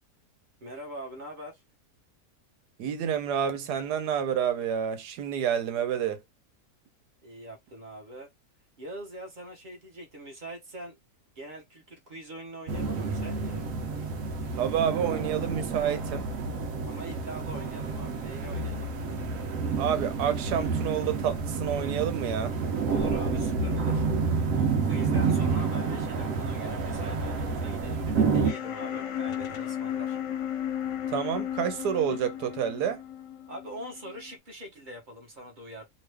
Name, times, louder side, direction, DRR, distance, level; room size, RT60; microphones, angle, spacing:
voice 1, 0.6-1.6 7.2-8.3 8.8-11.0 11.3-13.7 16.9-18.9 22.8-24.1 24.5-30.2 33.5-35.8, right 1 dB, 35° right, 1.0 m, -43 dB
voice 2, 2.8-6.2 14.6-16.3 19.8-22.6 31.1-33.0, right 8 dB, 85° right, 1.3 m, -29 dB
sound 1, 12.7-28.5, right 4 dB, 60° right, 1.0 m, -29 dB
sound 2, 28.4-34.4, left 10 dB, 60° left, 0.8 m, -34 dB
3.0 x 2.4 x 3.3 m
omnidirectional pair, 1.7 m